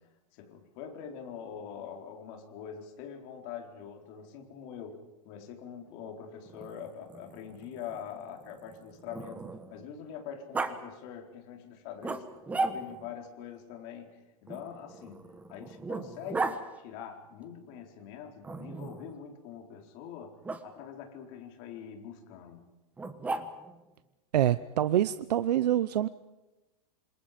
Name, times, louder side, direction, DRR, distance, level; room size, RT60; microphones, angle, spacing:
voice 1, 0.3-12.3 12.6-16.5 16.8-22.6, left 8 dB, 40° left, 3 dB, 4.3 m, -44 dB
Growling, 6.5-9.9 10.5-10.7 12.0-13.1 14.5-16.6 18.4-19.1 20.4-20.6 23.0-23.8, right 3 dB, 5° right, 1.2 m, -36 dB
voice 2, 24.3-26.1, right 11 dB, 85° right, 14 dB, 0.8 m, -26 dB
27.5 x 27.0 x 5.2 m, 1.1 s
supercardioid pair, 165°, 20 cm